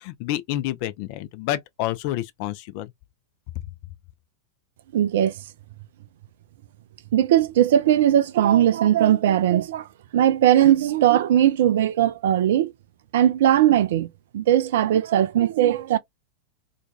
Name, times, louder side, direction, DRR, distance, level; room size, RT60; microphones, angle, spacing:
voice 1, 0.0-2.9, left 13 dB, 45° left, 0.3 m, -29 dB
voice 2, 4.9-5.3 7.1-9.9 10.1-12.7 13.1-16.0, right 11 dB, 55° right, 0.3 m, -19 dB
2.4 x 2.2 x 2.3 m
figure-of-eight pair, 90°, 0 cm